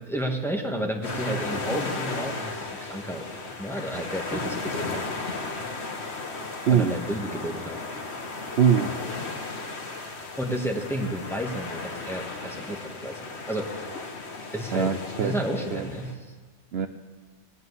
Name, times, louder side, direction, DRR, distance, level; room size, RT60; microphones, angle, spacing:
voice 1, 0.1-3.3 3.6-5.0 6.7-7.8 10.4-13.9 14.5-14.9 15.2-16.3, right 1 dB, ahead, 1 dB, 1.5 m, -31 dB
sound 1, 1.0-16.1, left 3 dB, 60° left, 1.7 m, -35 dB
voice 2, 6.5-7.0 8.4-9.0 14.7-15.4 15.7-15.9 16.7-16.9, right 7 dB, 60° right, 8 dB, 0.9 m, -23 dB
18.5 x 7.8 x 9.6 m, 1.4 s
omnidirectional pair, 1.3 m